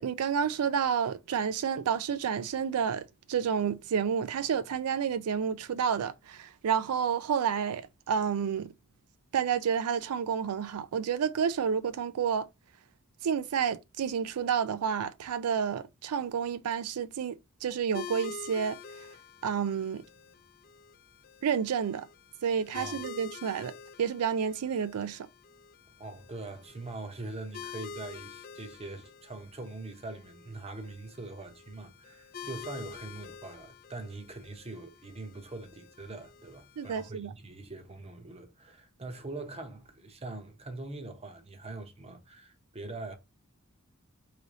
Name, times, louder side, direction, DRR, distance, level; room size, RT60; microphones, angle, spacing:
voice 1, 0.0-8.7 9.3-12.5 13.2-19.1 19.4-20.0 21.4-22.1 22.4-23.7 24.0-25.3 36.8-37.3, right 7 dB, 85° right, 0.4 m, -30 dB
sound 1, 17.9-37.1, left 6 dB, 45° left, 0.5 m, -47 dB
voice 2, 26.0-43.1, right 2 dB, 30° right, 0.9 m, -43 dB
4.0 x 3.2 x 3.7 m
head